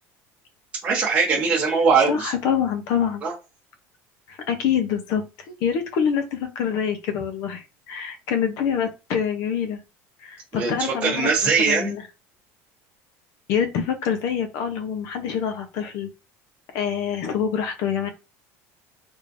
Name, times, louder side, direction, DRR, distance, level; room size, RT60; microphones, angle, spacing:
voice 1, 0.8-2.3 3.2-3.3 10.5-11.9, right 5 dB, 20° right, -6 dB, 0.9 m, -21 dB
voice 2, 2.1-3.2 4.3-5.2 5.6-9.8 10.2-12.0 13.5-16.1 16.7-18.1, left 8 dB, 55° left, 7 dB, 0.7 m, -26 dB
3.5 x 3.1 x 2.6 m, 0.29 s
cardioid pair, 170°, 7 cm